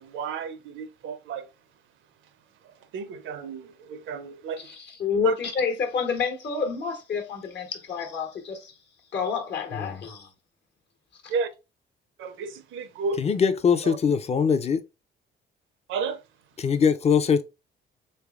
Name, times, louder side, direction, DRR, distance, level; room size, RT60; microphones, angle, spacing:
voice 1, 0.0-1.5 2.6-4.7 5.2-5.3 11.3-11.5 12.2-13.3 13.8-14.0 15.9-16.2, right 5 dB, 80° right, 0.5 m, -32 dB
voice 2, 4.6-8.7 9.1-10.3 11.2-11.3, left 5 dB, 60° left, 1.1 m, -29 dB
voice 3, 13.2-14.8 16.6-17.4, left 6 dB, 30° left, 0.4 m, -22 dB
3.3 x 3.3 x 2.4 m
cardioid pair, 90°, 20 cm